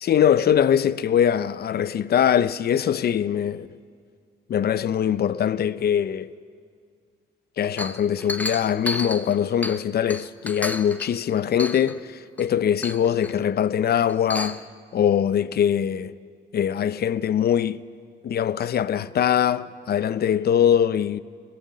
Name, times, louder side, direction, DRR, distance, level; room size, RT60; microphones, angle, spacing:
voice 1, 0.0-3.7 4.5-6.3 7.6-14.6 14.9-16.1 16.5-17.8 18.2-21.2, left 9 dB, 50° left, 0.6 m, -22 dB
Chink clink, 7.8-9.9 10.1-11.1 11.6-12.0 12.4-12.5 12.8-13.3 14.1-14.6, left 1 dB, 10° left, 0.9 m, -32 dB
22.0 x 17.5 x 7.5 m
cardioid pair, 90°, 20 cm